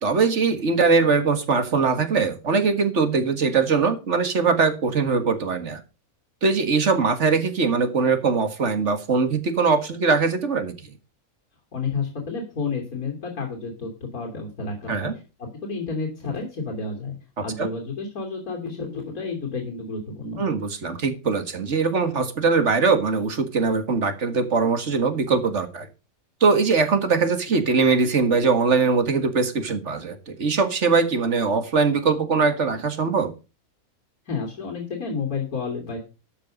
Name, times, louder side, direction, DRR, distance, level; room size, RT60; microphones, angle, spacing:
voice 1, 0.0-5.8 6.4-10.9 14.9-15.1 17.6-17.7 20.4-25.9 26.4-33.3, right 4 dB, 55° right, 9 dB, 2.0 m, -21 dB
voice 2, 11.7-15.2 15.6-20.5 34.3-36.0, left 4 dB, 80° left, 0 dB, 3.5 m, -31 dB
13.0 x 7.0 x 5.1 m, 0.31 s
omnidirectional pair, 1.5 m